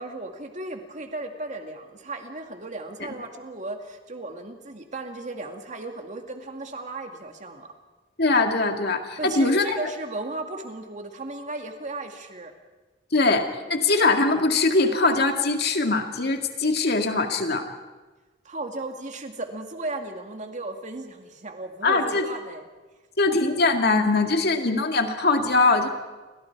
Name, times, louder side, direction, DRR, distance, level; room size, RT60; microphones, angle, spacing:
voice 1, 0.0-7.7 9.2-12.5 18.4-22.7, right 2 dB, 40° right, 4 dB, 2.3 m, -35 dB
voice 2, 8.2-9.8 13.1-17.7 21.8-22.3 23.2-25.9, left 3 dB, 60° left, 4 dB, 2.3 m, -22 dB
29.5 x 23.0 x 4.8 m, 1.2 s
head